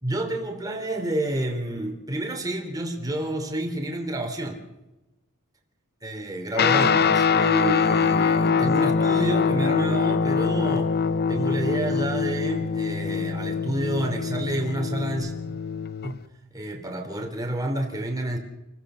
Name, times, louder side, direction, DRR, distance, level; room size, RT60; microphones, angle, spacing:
voice 1, 0.0-4.6 6.0-10.9 11.3-15.3 16.0-16.2 16.5-18.4, right 1 dB, 15° right, 3 dB, 3.4 m, -29 dB
Guitar, 6.5-16.2, left 5 dB, 45° left, 0.7 m, -23 dB
28.5 x 15.0 x 6.4 m, 1.0 s
head